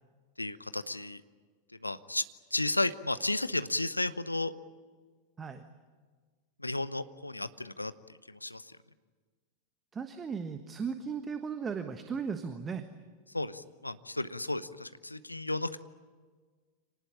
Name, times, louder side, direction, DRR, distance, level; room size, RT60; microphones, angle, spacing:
voice 1, 0.4-1.2 1.8-2.2 2.5-4.5 6.6-7.9 8.3-8.6 13.3-15.8, left 2 dB, 85° left, 14 dB, 0.8 m, -33 dB
voice 2, 9.9-12.8, right 6 dB, 20° right, 9 dB, 1.3 m, -36 dB
26.0 x 19.0 x 10.0 m, 1.5 s
figure-of-eight pair, 90°, 0 cm